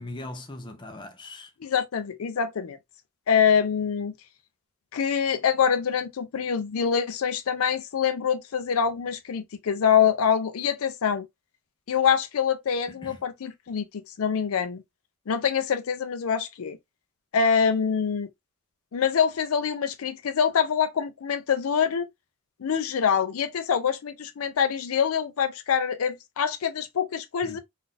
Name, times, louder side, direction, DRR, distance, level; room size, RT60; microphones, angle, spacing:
voice 1, 0.0-1.5 12.9-13.2 27.4-27.6, left 2 dB, 20° left, 0.6 m, -40 dB
voice 2, 1.6-2.8 3.3-4.1 4.9-11.3 11.9-14.8 15.3-16.8 17.3-18.3 18.9-22.1 22.6-27.6, left 7 dB, 80° left, 0.4 m, -25 dB
3.8 x 2.5 x 2.5 m
head